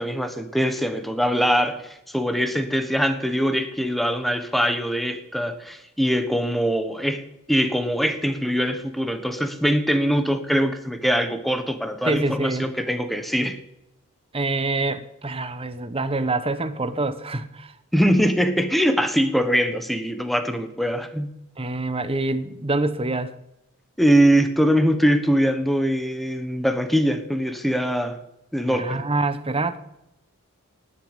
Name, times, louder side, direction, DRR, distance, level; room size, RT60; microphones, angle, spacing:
voice 1, 0.0-7.2 7.5-13.6 17.9-21.3 24.0-28.2 28.5-29.0, equal, ahead, 1.3 m, -22 dB
voice 2, 12.0-12.7 14.3-17.7 21.6-23.3 28.7-29.8, right 2 dB, 25° right, 1.1 m, -26 dB
19.0 x 6.8 x 9.0 m
head